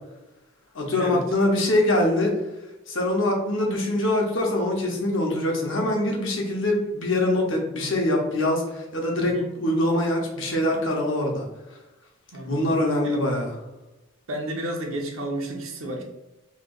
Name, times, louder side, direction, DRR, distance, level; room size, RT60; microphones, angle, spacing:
voice 1, 0.7-2.4 2.9-11.5 12.5-13.5, left 1 dB, 65° left, 0 dB, 1.0 m, -23 dB
voice 2, 12.3-12.8 13.0-13.3 14.3-16.0, right 1 dB, 80° right, 1 dB, 0.9 m, -32 dB
3.2 x 2.9 x 3.9 m, 1.0 s
head